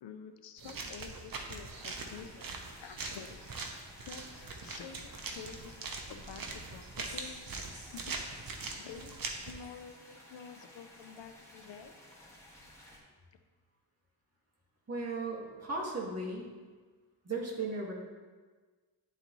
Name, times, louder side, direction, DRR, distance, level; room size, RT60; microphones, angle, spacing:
voice 1, 0.0-3.4 4.1-4.2 4.6-7.4 7.9-8.2 8.8-12.0, left 7 dB, 85° left, 8 dB, 0.6 m, -49 dB
sound 1, 0.6-9.5, right 3 dB, 55° right, 0.9 m, -42 dB
sound 2, 1.7-13.0, left 1 dB, 5° left, 1.4 m, -56 dB
sound 3, 6.8-9.8, equal, 10° right, 1.9 m, -55 dB
voice 2, 14.9-16.5 17.2-17.9, right 3 dB, 35° right, -4 dB, 1.8 m, -36 dB
11.0 x 4.0 x 3.0 m, 1.4 s
cardioid pair, 80°, 41 cm